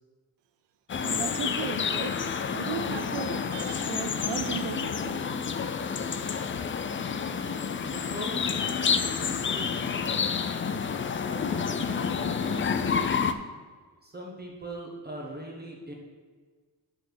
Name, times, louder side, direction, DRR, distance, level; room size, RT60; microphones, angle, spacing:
sound 1, 0.9-13.3, left 6 dB, 30° left, 0.4 m, -29 dB
voice 1, 1.0-2.2 2.5-5.3, right 9 dB, 90° right, 10 dB, 0.6 m, -36 dB
voice 2, 7.9-8.6 9.0-9.8 11.2-13.0 14.0-15.9, right 1 dB, 25° right, -2 dB, 1.2 m, -41 dB
10.5 x 4.4 x 6.2 m, 1.5 s
wide cardioid pair, 140°, 41 cm